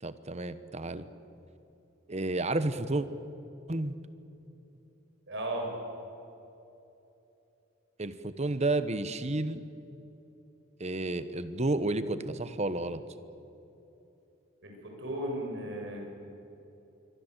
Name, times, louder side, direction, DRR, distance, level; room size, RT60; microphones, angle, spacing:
voice 1, 0.0-1.1 2.1-3.1 3.7-3.9 8.0-9.6 10.8-13.0, right 2 dB, 35° right, 13 dB, 1.1 m, -31 dB
voice 2, 5.3-5.7 14.6-16.0, right 1 dB, 60° right, 1 dB, 7.1 m, -35 dB
26.5 x 23.0 x 8.3 m, 2.9 s
head